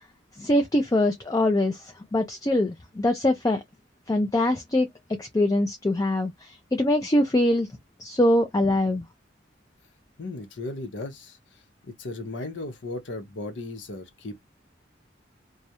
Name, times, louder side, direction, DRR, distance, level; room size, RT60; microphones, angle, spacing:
voice 1, 0.4-3.6 4.1-4.9 5.2-7.7 8.0-9.1, left 1 dB, 20° left, 0.3 m, -23 dB
voice 2, 10.2-14.4, left 2 dB, 75° left, 0.7 m, -36 dB
2.4 x 2.0 x 2.7 m
head